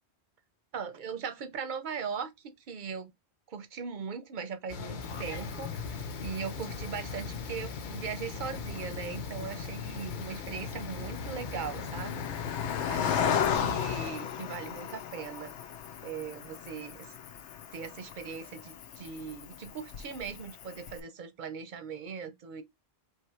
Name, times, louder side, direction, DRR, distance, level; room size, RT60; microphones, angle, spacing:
voice 1, 0.7-3.1 3.5-12.5 12.9-15.5 16.0-17.2 17.7-22.6, right 6 dB, 50° right, 0.7 m, -39 dB
sound 1, 4.7-14.1, left 5 dB, 55° left, 0.7 m, -39 dB
Cricket, 5.0-21.0, left 8 dB, 85° left, 1.0 m, -37 dB
3.7 x 3.0 x 4.3 m
omnidirectional pair, 1.1 m